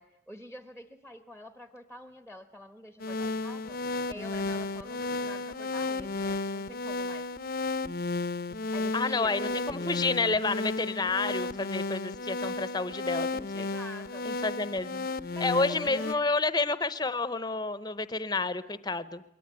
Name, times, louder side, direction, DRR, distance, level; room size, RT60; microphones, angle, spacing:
voice 1, 0.0-3.8 4.1-7.3 8.5-10.0 13.6-14.3 15.3-16.3, left 1 dB, 5° right, 9 dB, 1.1 m, -46 dB
sound 1, 3.0-16.1, left 3 dB, 50° left, 0.8 m, -33 dB
voice 2, 8.9-13.7 14.2-15.1 15.4-19.2, left 3 dB, 20° left, 14 dB, 0.9 m, -30 dB
22.5 x 18.5 x 9.7 m, 0.89 s
head